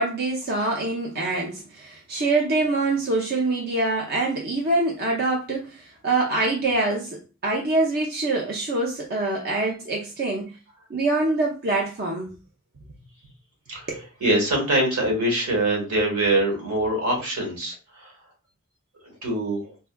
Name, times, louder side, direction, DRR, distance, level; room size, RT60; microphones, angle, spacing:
voice 1, 0.0-10.5 10.9-12.3 13.9-14.1, right 2 dB, 45° right, 0.5 m, -25 dB
voice 2, 14.2-18.1 19.0-19.7, right 1 dB, 75° right, 1.4 m, -24 dB
4.3 x 2.2 x 2.2 m
head